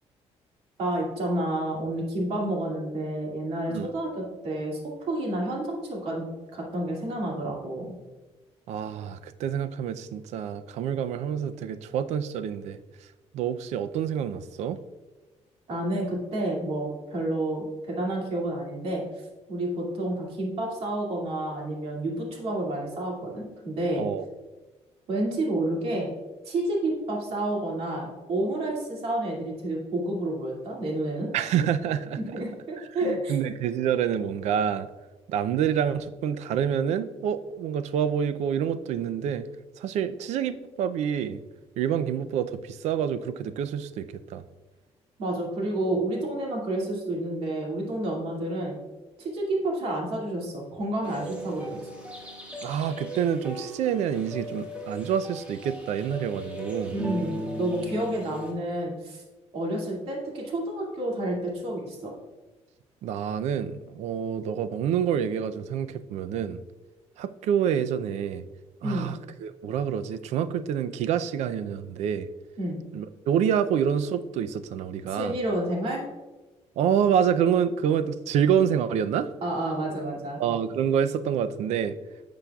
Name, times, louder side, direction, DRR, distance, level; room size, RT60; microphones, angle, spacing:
voice 1, 0.8-4.8 5.1-6.3 6.5-7.9 15.7-19.0 19.5-24.0 25.1-26.1 26.4-31.3 32.2-33.3 45.2-48.8 49.2-51.9 56.9-59.2 59.5-62.1 68.8-69.1 72.6-72.8 75.1-76.0 79.4-80.4, right 1 dB, 60° right, -2 dB, 2.3 m, -30 dB
voice 2, 8.7-12.8 13.3-14.8 24.0-24.2 31.3-32.2 33.0-34.9 35.3-39.5 39.8-41.4 41.8-44.4 52.6-57.0 63.0-66.6 67.2-68.4 68.8-72.3 72.9-75.4 76.8-79.3 80.4-81.9, right 8 dB, 80° right, 12 dB, 0.5 m, -27 dB
sound 1, 51.0-58.5, equal, 10° right, 1.5 m, -37 dB
11.5 x 6.8 x 2.3 m, 1.2 s
cardioid pair, 160°, 11 cm